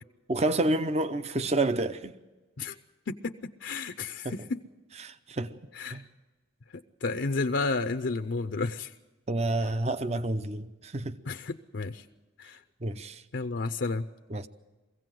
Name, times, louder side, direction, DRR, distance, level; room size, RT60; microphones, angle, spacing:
voice 1, 0.3-2.1 4.2-4.3 5.0-5.6 5.9-6.0 9.3-11.2 12.8-13.2 14.3-14.5, right 2 dB, 35° right, 0.6 m, -29 dB
voice 2, 3.1-4.6 5.7-6.0 7.0-8.9 11.3-12.0 12.4-12.6 13.3-14.0, left 3 dB, 65° left, 0.6 m, -31 dB
23.0 x 16.5 x 7.6 m
head